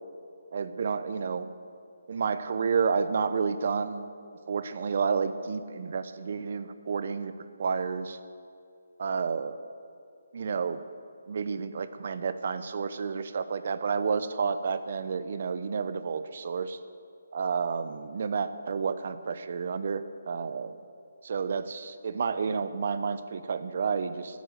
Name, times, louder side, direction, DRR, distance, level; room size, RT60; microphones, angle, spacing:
voice 1, 0.5-1.4 2.1-4.1 4.5-8.2 9.0-9.5 10.3-10.8 11.3-16.8 17.3-20.7 21.2-24.4, right 5 dB, 45° right, 12 dB, 0.8 m, -30 dB
17.0 x 9.3 x 6.4 m, 2.4 s
hypercardioid pair, 170°, 0 cm